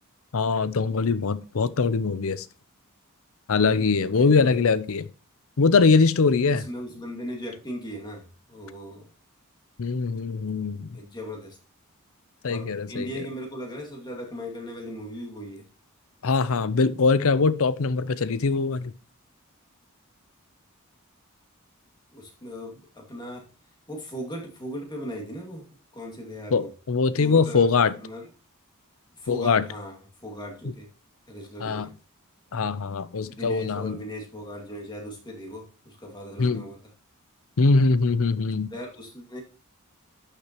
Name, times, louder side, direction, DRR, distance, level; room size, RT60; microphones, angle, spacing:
voice 1, 0.3-2.5 3.5-5.0 5.6-6.7 9.8-10.9 12.4-13.2 16.2-18.9 26.5-27.9 29.3-29.6 31.6-31.9 32.5-34.0 36.4-36.6 37.6-38.7, left 4 dB, 70° left, 0.6 m, -22 dB
voice 2, 4.1-4.7 6.5-8.2 8.5-9.1 10.9-11.6 12.5-15.7 22.1-23.5 23.9-25.6 25.9-26.7 27.1-27.7 28.0-28.3 29.2-30.0 30.2-30.9 31.3-31.9 33.2-36.8 38.7-39.4, equal, 20° left, 2.3 m, -38 dB
12.0 x 6.6 x 3.0 m
head